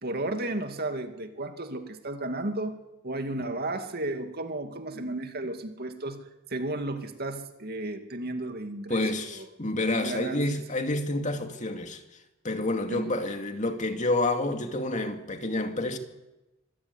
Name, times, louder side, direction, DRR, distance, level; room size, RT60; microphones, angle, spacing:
voice 1, 0.0-2.8 3.0-6.2 6.5-9.0 9.3-9.5 10.0-10.4 12.9-13.0, right 2 dB, 50° right, 2.3 m, -33 dB
voice 2, 8.9-12.0 12.4-16.0, left 2 dB, 40° left, 2.4 m, -29 dB
25.0 x 15.0 x 9.8 m
head